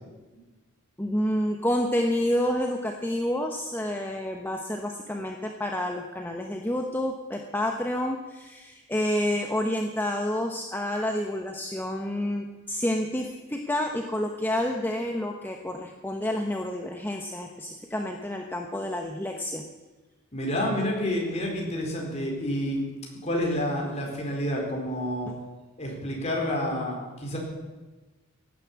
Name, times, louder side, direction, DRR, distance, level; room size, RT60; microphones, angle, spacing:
voice 1, 1.0-19.6, left 1 dB, 10° left, 2 dB, 1.0 m, -29 dB
voice 2, 20.3-22.8 23.2-25.3 25.8-27.4, left 1 dB, 30° left, -1 dB, 4.4 m, -29 dB
17.5 x 9.9 x 8.4 m, 1.2 s
head